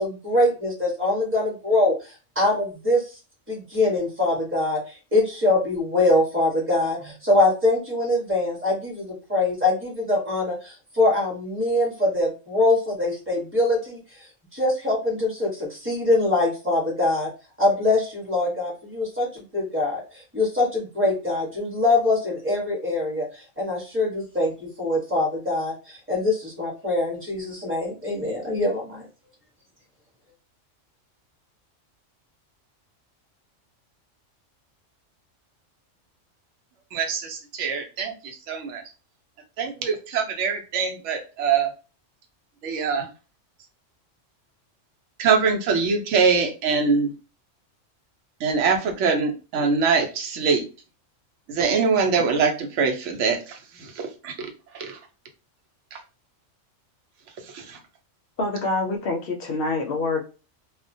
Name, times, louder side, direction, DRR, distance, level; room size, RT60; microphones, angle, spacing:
voice 1, 0.0-3.1 3.5-14.0 14.5-17.3 17.6-29.0, left 2 dB, 10° right, -3 dB, 0.9 m, -23 dB
voice 2, 36.9-38.8 39.6-41.7 42.6-43.1 45.2-47.1 48.4-50.6 51.5-54.5 54.7-55.0 55.9-56.0 57.5-57.8, right 5 dB, 70° right, 3 dB, 0.9 m, -23 dB
voice 3, 58.4-60.2, left 3 dB, 65° left, 3 dB, 0.6 m, -26 dB
2.3 x 2.1 x 2.6 m, 0.33 s
omnidirectional pair, 1.3 m